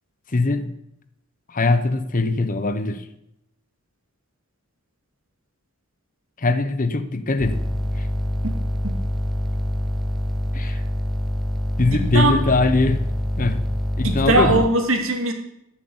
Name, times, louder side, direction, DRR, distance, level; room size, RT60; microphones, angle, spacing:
voice 1, 0.3-0.7 1.5-3.1 6.4-7.6 8.0-8.1 10.5-10.8 11.8-13.1 13.4-13.7 14.0-14.6, left 3 dB, 40° left, 12 dB, 0.9 m, -21 dB
sound 1, 7.4-14.7, equal, ahead, 1.0 m, -25 dB
voice 2, 8.4-9.0 11.9-12.3 14.0-15.3, right 2 dB, 75° right, 4 dB, 2.5 m, -21 dB
14.0 x 7.6 x 8.8 m, 0.82 s
head